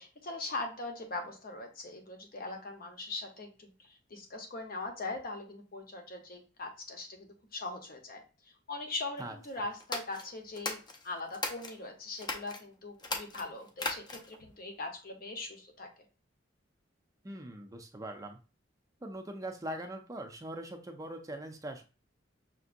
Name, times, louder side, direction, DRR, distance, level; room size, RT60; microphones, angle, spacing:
voice 1, 0.0-8.2 8.7-15.9, left 2 dB, 50° left, 3 dB, 0.9 m, -41 dB
sound 1, 9.8-11.8 12.2-12.6 13.0-14.4, left 3 dB, 25° left, 0.6 m, -38 dB
voice 2, 17.2-18.4 19.0-21.8, right 1 dB, 20° right, 5 dB, 0.4 m, -41 dB
5.9 x 2.6 x 2.5 m, 0.33 s
head